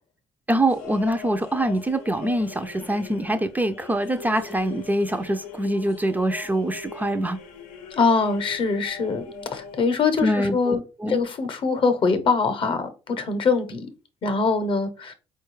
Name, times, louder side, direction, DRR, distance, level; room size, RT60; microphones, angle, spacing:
voice 1, 0.5-7.4 10.2-11.2, right 1 dB, 15° right, 0.4 m, -24 dB
sound 1, 0.7-9.8, left 5 dB, 85° left, 0.6 m, -41 dB
voice 2, 8.0-9.2 9.5-10.8 11.1-13.9 14.2-15.1, left 4 dB, 45° left, 0.7 m, -23 dB
4.1 x 2.3 x 3.1 m
supercardioid pair, 65°, 12 cm